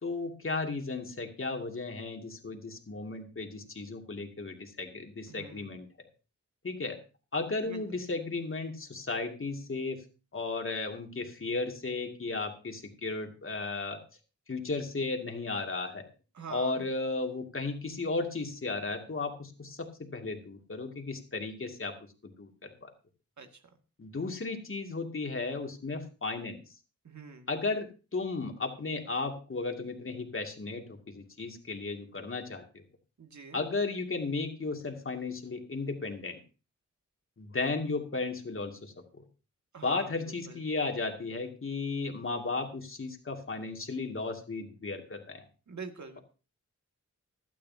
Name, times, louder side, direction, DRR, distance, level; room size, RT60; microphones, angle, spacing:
voice 1, 0.0-5.8 6.6-7.0 7.3-10.0 10.3-14.0 14.5-16.1 16.5-21.9 22.2-22.9 24.0-26.6 27.5-32.8 33.5-36.4 37.4-39.2 39.8-45.4, left 3 dB, 40° left, 3 dB, 2.4 m, -35 dB
voice 2, 5.3-5.8 7.6-8.0 16.3-16.9 23.4-23.6 27.0-27.5 33.2-33.6 39.7-40.6 45.7-46.2, right 5 dB, 65° right, 5 dB, 2.1 m, -45 dB
17.0 x 12.0 x 2.8 m, 0.33 s
wide cardioid pair, 80°, 31 cm